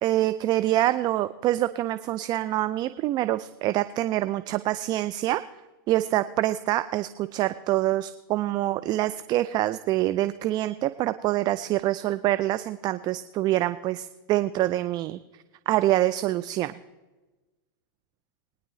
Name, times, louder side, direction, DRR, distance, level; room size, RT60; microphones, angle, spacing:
voice 1, 0.0-5.4 5.9-15.2 15.7-16.7, right 15 dB, 35° right, 13 dB, 0.4 m, -25 dB
21.5 x 9.9 x 3.1 m, 1.2 s
hypercardioid pair, 115°, 12 cm